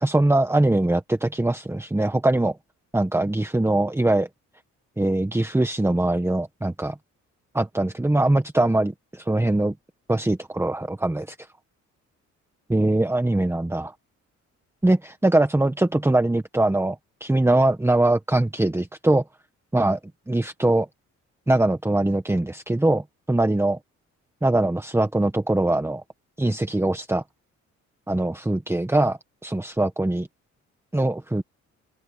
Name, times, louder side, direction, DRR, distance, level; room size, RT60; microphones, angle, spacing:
voice 1, 0.0-2.6 2.9-4.3 5.0-6.9 7.5-9.7 10.1-11.3 12.7-13.9 14.8-19.2 19.7-20.0 20.3-20.9 21.5-23.8 24.4-26.0 26.4-27.2 28.1-30.3 30.9-31.4, right 2 dB, 10° right, 1.5 m, -22 dB
open air
cardioid pair, 90°, 30 cm